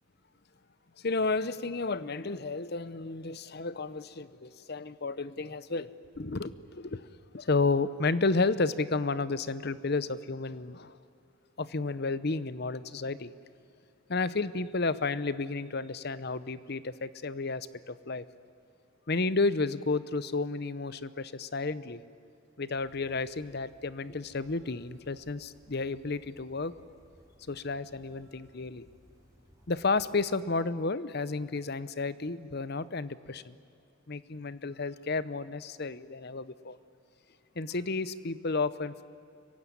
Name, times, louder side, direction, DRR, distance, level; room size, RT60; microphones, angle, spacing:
voice 1, 1.0-5.9 6.2-7.1 7.3-11.0 11.6-13.3 14.1-18.2 19.1-22.0 22.6-26.7 27.5-28.8 29.7-33.5 34.1-36.8 37.6-39.0, left 3 dB, 50° left, 16 dB, 0.8 m, -32 dB
sound 1, 22.7-30.3, equal, 15° right, 3.6 m, -61 dB
26.0 x 22.5 x 9.9 m, 2.5 s
head